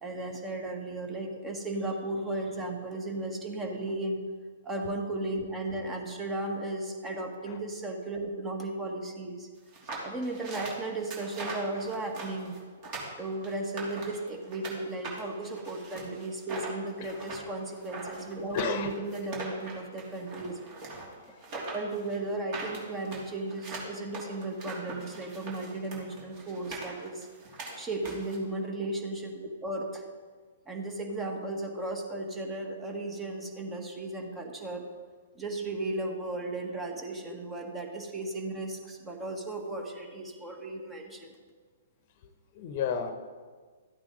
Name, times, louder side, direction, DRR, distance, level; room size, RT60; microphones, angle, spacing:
voice 1, 0.0-4.2 4.6-9.5 10.0-12.6 13.2-20.6 21.7-27.3 27.8-30.1 30.6-34.9 35.3-41.4, right 2 dB, 15° right, 2 dB, 1.7 m, -35 dB
sound 1, 9.7-14.7 15.0-28.4, right 3 dB, 40° right, 3.2 m, -41 dB
voice 2, 18.5-18.9 21.3-21.4 42.5-43.1, left 6 dB, 45° left, 8 dB, 1.0 m, -32 dB
13.5 x 8.6 x 4.0 m, 1.5 s
figure-of-eight pair, 120°, 0 cm